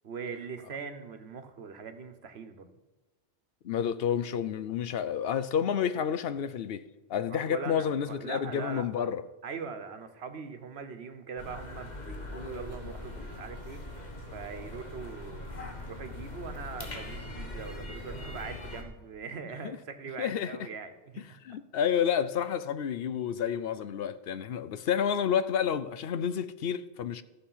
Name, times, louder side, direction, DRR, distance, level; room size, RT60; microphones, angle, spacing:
voice 1, 0.0-2.7 7.3-9.1 9.4-13.8 14.3-15.5 15.9-21.4, right 5 dB, 85° right, 1.3 m, -41 dB
voice 2, 3.6-9.2 19.6-19.8 20.2-20.6 21.4-27.2, left 8 dB, 70° left, 0.8 m, -30 dB
sound 1, 11.4-18.8, left 2 dB, 45° left, 1.5 m, -41 dB
14.0 x 6.3 x 5.7 m
omnidirectional pair, 1.1 m